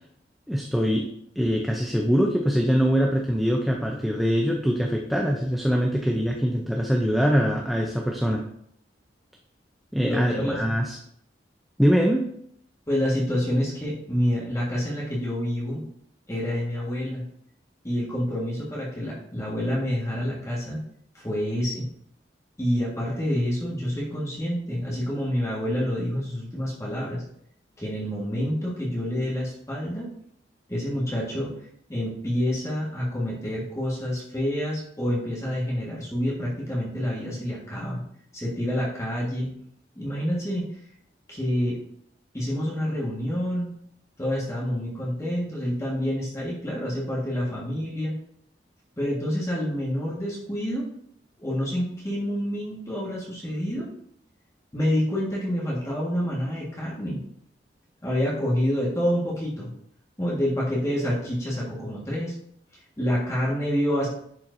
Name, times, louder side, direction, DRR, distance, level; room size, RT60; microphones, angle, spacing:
voice 1, 0.5-1.1 1.4-8.4 9.9-11.0 11.8-12.3, equal, ahead, 0 dB, 0.5 m, -23 dB
voice 2, 10.0-10.5 12.9-15.8 16.3-17.2 17.8-20.8 21.1-21.8 22.6-27.2 27.8-30.1 30.7-31.5 31.9-38.0 38.3-39.6 39.9-40.8 41.3-41.8 42.3-43.7 44.2-48.1 49.0-50.9 51.4-53.9 54.7-57.2 58.0-59.7 60.2-62.3 63.0-64.1, equal, 15° left, -6 dB, 1.5 m, -27 dB
10.5 x 4.4 x 2.6 m, 0.69 s
head